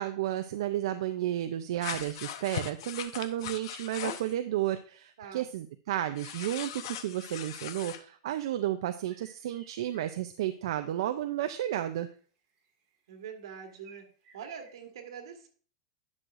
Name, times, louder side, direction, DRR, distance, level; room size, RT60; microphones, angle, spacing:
voice 1, 0.0-12.1, right 12 dB, 70° right, 9 dB, 0.5 m, -32 dB
sound 1, 1.8-4.3 6.2-8.0, left 10 dB, 65° left, 0.8 m, -39 dB
sound 2, 9.1-10.4 11.1-11.2 11.6-14.9, right 5 dB, 35° right, 1.8 m, -60 dB
voice 2, 13.1-14.1 14.3-15.5, right 7 dB, 85° right, 4 dB, 1.8 m, -44 dB
10.5 x 6.4 x 2.5 m, 0.42 s
supercardioid pair, 165°, 3 cm